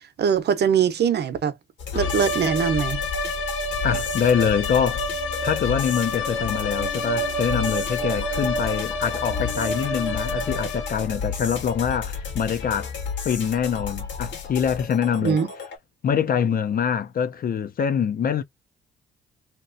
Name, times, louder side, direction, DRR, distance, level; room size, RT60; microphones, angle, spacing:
voice 1, 0.2-1.5 1.9-3.0 15.2-15.5, right 7 dB, 55° right, 0.8 m, -22 dB
sound 1, 1.8-15.8, left 6 dB, 65° left, 1.6 m, -33 dB
sound 2, 1.9-11.1, left 2 dB, 85° left, 0.9 m, -30 dB
voice 2, 3.8-5.0 5.4-12.9 13.2-15.4 16.0-18.4, left 7 dB, 45° left, 0.5 m, -24 dB
sound 3, 4.9-11.6, right 1 dB, 10° right, 0.7 m, -34 dB
3.0 x 2.9 x 2.5 m
cardioid pair, 90°, 20 cm